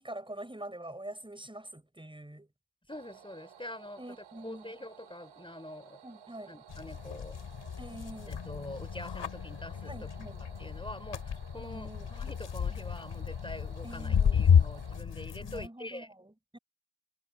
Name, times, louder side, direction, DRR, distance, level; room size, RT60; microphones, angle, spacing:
voice 1, 0.0-2.5 4.0-4.7 6.0-6.6 7.8-8.4 9.9-10.5 11.6-12.1 13.8-14.4 15.4-16.6, right 1 dB, 10° right, 6.3 m, -45 dB
voice 2, 2.9-4.0 4.4-6.0 6.5-7.4 8.3-10.1 10.4-16.1, left 1 dB, 10° left, 5.2 m, -45 dB
sound 1, 2.9-15.0, right 7 dB, 85° right, 5.3 m, -55 dB
sound 2, 6.7-15.7, left 7 dB, 65° left, 5.9 m, -31 dB
cardioid pair, 70°, 45 cm